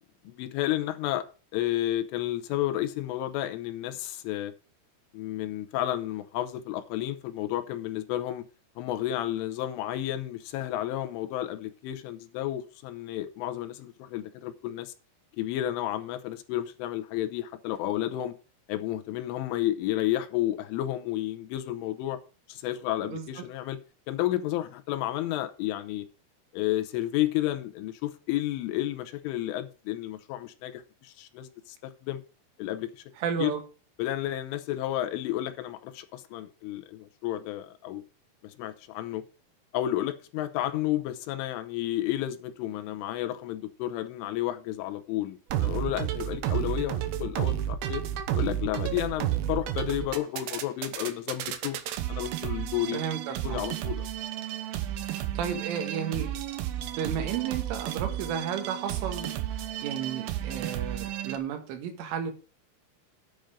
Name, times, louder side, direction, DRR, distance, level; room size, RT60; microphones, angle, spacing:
voice 1, 0.2-1.2 1.5-4.5 5.1-8.5 8.8-14.9 15.4-18.3 18.7-22.2 22.5-23.8 24.1-26.1 26.5-32.2 32.6-33.0 33.4-33.6 34.0-38.0 38.4-39.2 39.7-48.0 48.3-51.8 52.1-53.0 53.4-54.1, left 13 dB, 80° left, 3.3 m, -31 dB
voice 2, 23.0-23.5 33.2-33.6 52.9-53.6 55.1-56.3 56.8-62.3, right 8 dB, 75° right, 4.0 m, -33 dB
sound 1, 45.5-61.4, right 12 dB, 90° right, 2.1 m, -32 dB
10.5 x 7.9 x 5.1 m
omnidirectional pair, 5.9 m